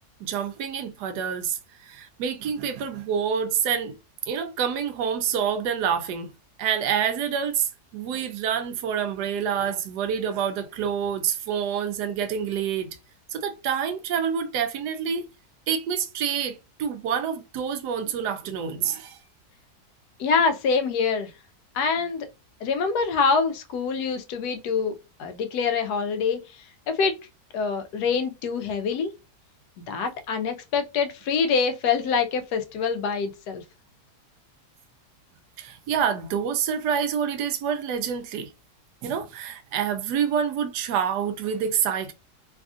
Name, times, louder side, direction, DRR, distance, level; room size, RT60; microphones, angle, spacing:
voice 1, 0.2-4.0 4.3-6.3 6.6-12.9 13.3-15.3 15.7-19.2 35.6-38.5 39.0-42.1, right 7 dB, 85° right, 1.1 m, -27 dB
voice 2, 20.2-21.3 21.7-22.3 22.6-24.9 25.2-26.4 26.9-27.1 27.5-29.1 29.8-33.6, left 5 dB, 80° left, 1.1 m, -25 dB
3.3 x 2.4 x 2.4 m
omnidirectional pair, 1.7 m